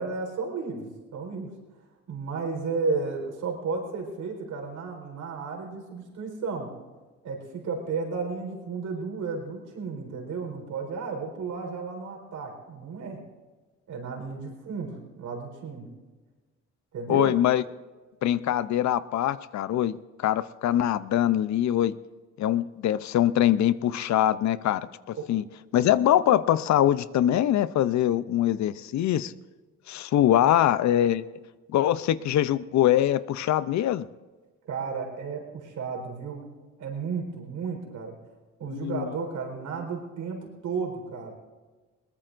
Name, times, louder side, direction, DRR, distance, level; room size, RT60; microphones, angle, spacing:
voice 1, 0.0-1.5 2.1-6.7 7.2-13.2 13.9-15.9 16.9-17.3 25.2-25.3 30.4-30.5 34.7-36.5 36.8-38.2 38.6-41.3, right 4 dB, 75° right, 1 dB, 4.3 m, -33 dB
voice 2, 17.1-17.6 18.2-20.0 20.2-21.9 22.4-25.4 25.7-29.3 29.9-31.2 31.7-34.1 38.7-39.1, left 12 dB, 65° left, 16 dB, 0.6 m, -23 dB
21.5 x 20.0 x 2.6 m, 1.3 s
cardioid pair, 90°, 30 cm